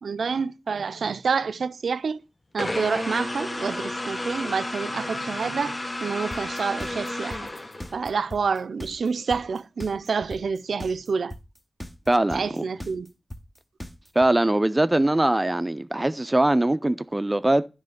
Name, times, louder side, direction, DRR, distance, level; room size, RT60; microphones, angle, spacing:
voice 1, 0.0-2.2 2.5-7.5 7.9-11.3 12.3-13.1, right 5 dB, 90° right, 0.4 m, -28 dB
sound 1, 2.6-8.2, left 1 dB, 35° left, 0.8 m, -32 dB
sound 2, 6.3-14.3, left 1 dB, 20° left, 1.0 m, -38 dB
voice 2, 12.1-12.6 14.2-17.7, right 1 dB, 25° right, 0.4 m, -22 dB
9.5 x 3.6 x 6.4 m
cardioid pair, 45°, 0 cm